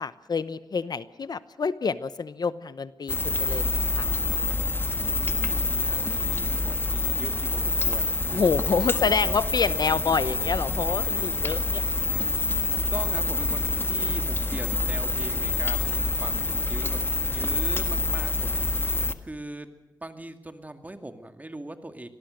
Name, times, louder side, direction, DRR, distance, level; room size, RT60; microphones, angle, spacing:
voice 1, 0.0-4.2 8.3-11.8, left 5 dB, 60° left, 15 dB, 0.8 m, -27 dB
sound 1, 3.1-19.1, left 2 dB, 30° left, 1.5 m, -26 dB
voice 2, 4.9-8.4 8.9-9.4 10.0-10.1 12.3-18.8 19.2-19.7 20.0-22.1, right 1 dB, 20° right, 7 dB, 2.2 m, -41 dB
24.5 x 18.5 x 6.5 m, 1.0 s
wide cardioid pair, 85°, 8 cm